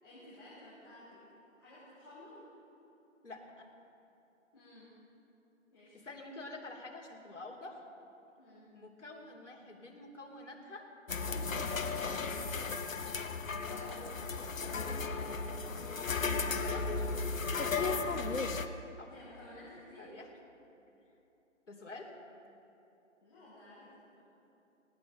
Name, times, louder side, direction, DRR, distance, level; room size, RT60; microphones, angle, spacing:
voice 1, 0.0-1.2 1.6-2.4 4.5-4.9 5.7-6.0 8.4-8.6 13.5-15.4 15.6-17.8 19.1-20.1 23.2-24.2, left 1 dB, 20° left, -13 dB, 3.7 m, -53 dB
voice 2, 3.2-3.7 5.9-7.9 8.7-10.9 11.2-12.0 13.6-14.0 15.6-15.8 16.4-17.2 17.6-18.7 19.0-19.1 20.0-20.3 21.7-22.1, left 2 dB, 65° left, -1 dB, 3.0 m, -49 dB
sound 1, 11.1-18.7, left 4 dB, 85° left, 1.1 m, -35 dB
19.5 x 17.5 x 3.9 m, 2.9 s
hypercardioid pair, 180°, 39 cm